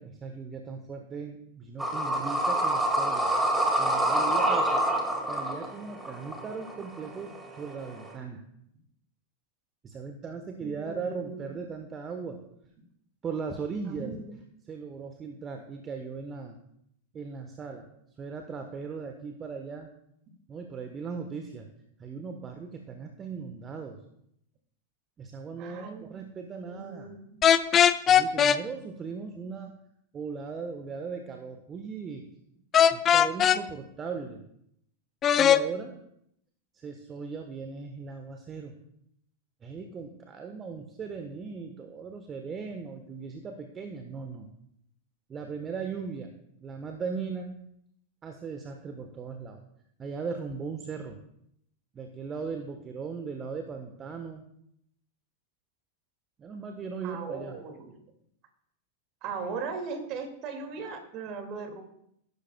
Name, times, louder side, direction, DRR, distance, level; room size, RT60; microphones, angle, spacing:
voice 1, 0.0-3.3 3.8-4.8 5.3-8.4 9.8-12.4 13.2-14.2 14.7-16.6 17.1-17.9 18.2-19.9 20.5-21.7 22.0-24.0 25.2-27.1 28.1-29.8 30.1-32.3 32.9-34.4 35.3-36.0 36.7-38.7 39.6-44.5 45.3-46.3 46.6-47.6 48.2-49.6 50.0-51.2 51.9-54.4 56.4-57.6, right 5 dB, 25° right, 5 dB, 1.2 m, -38 dB
sound 1, 1.8-8.1, right 1 dB, 5° right, 2.1 m, -27 dB
voice 2, 10.6-11.6 13.8-14.4 25.6-26.2 26.5-27.4 57.0-58.0 59.2-61.8, right 4 dB, 40° right, 5 dB, 2.2 m, -38 dB
sound 2, 27.4-28.6 32.7-33.6 35.2-35.6, left 9 dB, 25° left, 0.5 m, -19 dB
15.5 x 12.0 x 2.3 m, 0.74 s
figure-of-eight pair, 90°, 0 cm